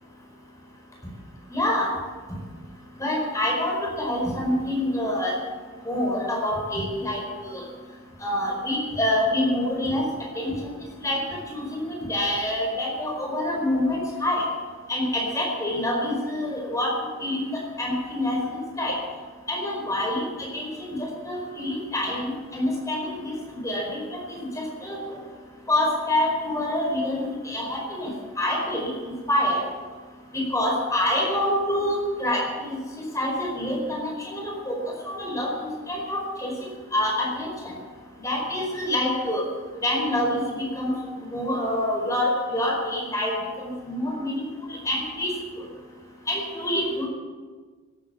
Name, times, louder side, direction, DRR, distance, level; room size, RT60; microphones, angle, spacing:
voice 1, 1.5-1.9 3.0-5.4 5.8-7.6 8.2-10.1 10.3-10.7 11.0-14.4 14.9-16.9 17.2-17.5 17.8-18.4 18.8-19.0 19.5-21.0 21.2-25.2 25.7-29.6 30.3-34.8 35.0-37.7 38.2-39.5 39.8-40.9 41.3-45.3 46.3-47.1, left 1 dB, 15° left, -1 dB, 4.7 m, -26 dB
18.0 x 10.0 x 7.2 m, 1.5 s
head